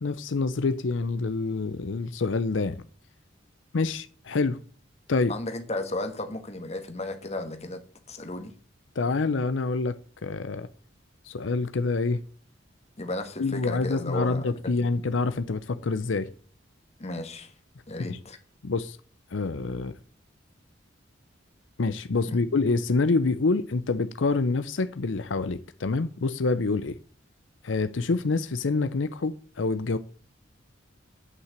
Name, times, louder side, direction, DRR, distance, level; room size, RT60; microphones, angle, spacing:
voice 1, 0.0-2.8 3.7-4.6 5.1-5.3 9.0-10.0 10.2-10.7 11.2-12.2 13.4-16.3 18.0-18.2 18.6-19.0 19.3-20.0 21.8-27.0 27.6-30.0, left 3 dB, 80° left, 0.6 m, -26 dB
voice 2, 5.3-7.8 8.1-8.5 13.0-14.5 14.8-14.9 17.0-17.5 17.9-18.4 22.3-22.4, left 2 dB, 35° left, 1.5 m, -34 dB
9.6 x 5.8 x 7.5 m
head